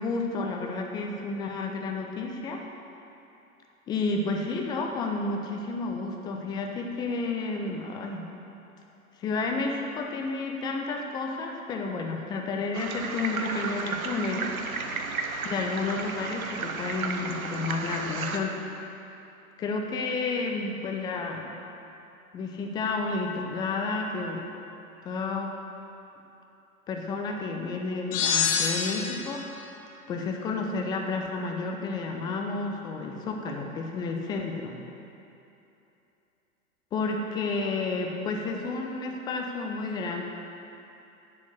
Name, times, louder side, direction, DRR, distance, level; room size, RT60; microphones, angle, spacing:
voice 1, 0.0-2.6 3.9-8.3 9.2-14.5 15.4-18.6 19.6-21.5 22.3-24.5 25.0-25.6 26.9-29.4 30.1-34.8 36.9-40.2, left 3 dB, 10° left, 2 dB, 0.5 m, -31 dB
sound 1, 12.7-18.4, right 4 dB, 75° right, 0.9 m, -33 dB
sound 2, 28.1-29.5, left 6 dB, 40° left, 0.9 m, -26 dB
7.5 x 6.4 x 8.0 m, 2.9 s
figure-of-eight pair, 100°, 43 cm